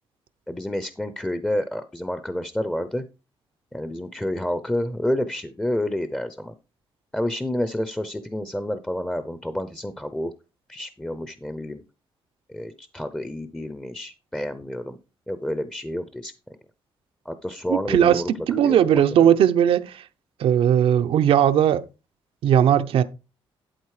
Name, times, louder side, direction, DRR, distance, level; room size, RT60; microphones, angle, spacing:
voice 1, 0.5-3.0 3.7-6.5 7.1-10.3 10.7-11.8 12.5-15.0 15.3-16.3 17.2-18.3 18.6-19.0, left 1 dB, 10° left, 0.7 m, -29 dB
voice 2, 17.7-20.0 20.4-21.8 22.4-23.0, right 9 dB, 75° right, 0.7 m, -18 dB
11.5 x 4.1 x 4.8 m
cardioid pair, 110°, 9 cm